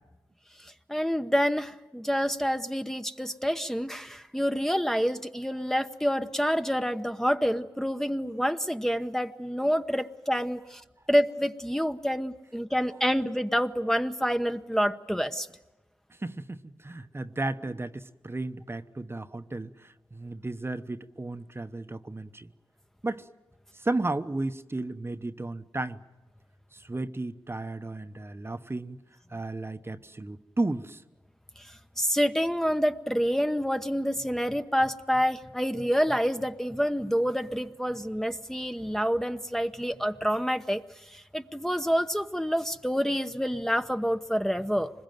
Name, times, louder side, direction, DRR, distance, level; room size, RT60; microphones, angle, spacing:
voice 1, 0.9-10.8 11.1-15.5 32.0-40.8 41.1-44.9, equal, 5° left, 8 dB, 0.9 m, -27 dB
voice 2, 16.1-22.5 23.0-23.3 23.7-26.0 26.7-29.0 29.3-31.0, right 2 dB, 30° right, 9 dB, 1.0 m, -34 dB
25.0 x 21.5 x 9.2 m, 1.0 s
cardioid pair, 45°, 9 cm